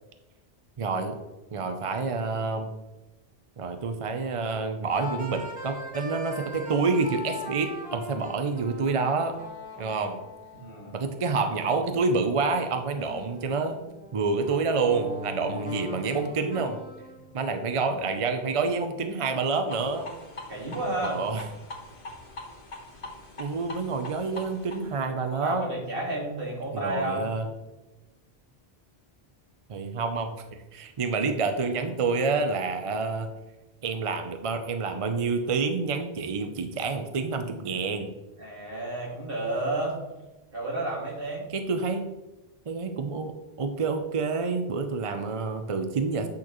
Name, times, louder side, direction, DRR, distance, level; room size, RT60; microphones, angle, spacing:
voice 1, 0.8-1.2 1.5-2.7 3.6-9.3 9.8-10.2 10.9-13.8 14.1-16.8 17.3-20.1 21.0-21.4 23.4-25.7 26.7-27.5 29.7-33.3 33.8-38.1 41.5-42.0 42.7-43.3 43.6-46.3, right 4 dB, 40° right, 6 dB, 0.5 m, -28 dB
sound 1, 4.9-12.2 12.9-17.4, left 1 dB, 5° right, 2.0 m, -40 dB
voice 2, 10.5-11.0 17.9-18.0 20.5-21.2 25.3-27.3 38.4-40.0 40.5-41.5, right 1 dB, 60° right, -2 dB, 2.1 m, -31 dB
sound 2, 19.7-25.1, left 2 dB, 55° left, 1.4 m, -43 dB
8.7 x 6.1 x 3.0 m, 1.0 s
omnidirectional pair, 1.1 m